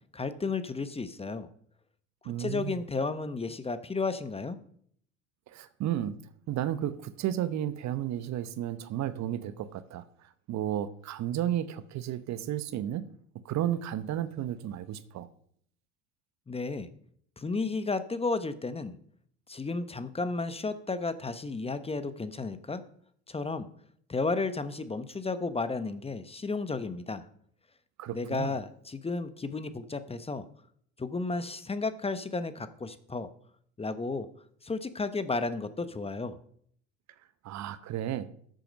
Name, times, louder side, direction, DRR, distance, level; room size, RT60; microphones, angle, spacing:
voice 1, 0.1-1.5 2.2-4.6 16.5-16.9 17.4-19.0 19.5-22.8 23.3-23.7 24.1-27.3 28.1-30.5 31.0-33.3 33.8-34.3 34.6-36.4, left 3 dB, 15° left, 0.9 m, -33 dB
voice 2, 2.2-2.8 5.5-6.2 6.5-10.0 10.5-13.1 13.4-15.3 28.0-28.5 37.4-38.3, right 11 dB, 50° right, 1.0 m, -33 dB
13.0 x 7.8 x 5.2 m
hypercardioid pair, 75°, 36 cm